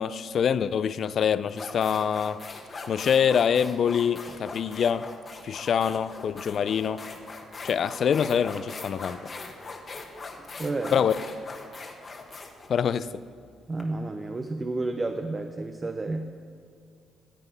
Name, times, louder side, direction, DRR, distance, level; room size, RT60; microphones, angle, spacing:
voice 1, 0.0-2.4 2.9-5.1 5.4-7.1 7.6-9.2 10.9-11.1 12.7-13.1, left 7 dB, 60° left, 16 dB, 0.4 m, -25 dB
sound 1, 0.9-1.0 1.5-13.8, left 3 dB, 35° left, 1.4 m, -41 dB
voice 2, 10.4-11.0 13.7-16.3, right 2 dB, 25° right, 5 dB, 0.7 m, -31 dB
13.5 x 8.3 x 5.4 m, 2.3 s
cardioid pair, 90°, 0 cm